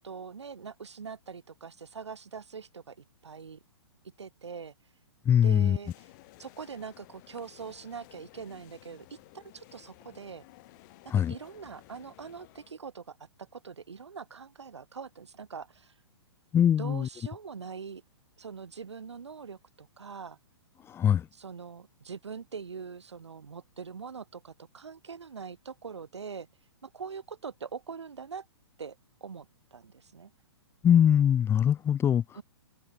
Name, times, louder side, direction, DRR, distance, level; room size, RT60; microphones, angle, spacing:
voice 1, 0.0-3.0 3.2-3.6 4.2-4.7 5.4-6.1 6.4-10.4 11.0-15.9 16.8-18.0 18.4-20.4 21.3-26.5 26.8-28.5 28.8-30.3 32.3-32.4, right 6 dB, 80° right, 3.1 m, -43 dB
voice 2, 5.2-5.8 11.1-11.3 16.5-17.1 20.9-21.3 30.8-32.2, left 9 dB, 15° left, 1.1 m, -22 dB
sound 1, 5.8-12.7, left 23 dB, 40° left, 4.9 m, -55 dB
hypercardioid pair, 120°, 14 cm